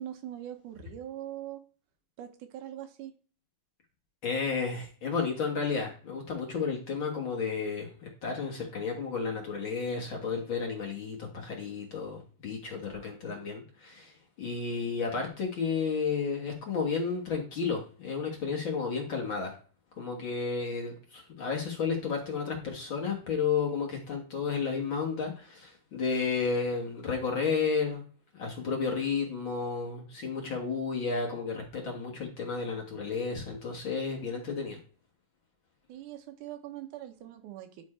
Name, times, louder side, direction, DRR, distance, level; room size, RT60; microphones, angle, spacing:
voice 1, 0.0-1.6 2.2-3.1 35.9-37.9, right 12 dB, 85° right, 6 dB, 2.4 m, -42 dB
voice 2, 4.2-19.5 20.0-28.0 28.3-34.8, left 5 dB, 50° left, 0 dB, 1.8 m, -32 dB
9.7 x 4.4 x 4.3 m, 0.40 s
omnidirectional pair, 3.5 m